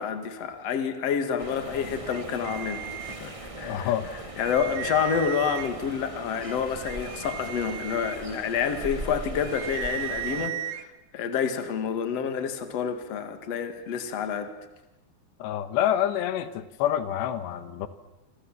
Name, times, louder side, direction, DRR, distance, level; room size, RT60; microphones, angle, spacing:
voice 1, 0.0-3.9 4.4-14.5, left 7 dB, 45° left, 8 dB, 2.8 m, -29 dB
sound 1, 1.4-10.5, right 1 dB, 25° right, 0.7 m, -40 dB
sound 2, 2.1-3.6 4.0-4.1 4.4-5.9 6.5-10.8, right 13 dB, 75° right, 3.0 m, -36 dB
voice 2, 3.6-4.1 15.4-17.9, left 11 dB, 85° left, 12 dB, 3.3 m, -27 dB
28.5 x 25.5 x 7.5 m, 0.95 s
omnidirectional pair, 4.8 m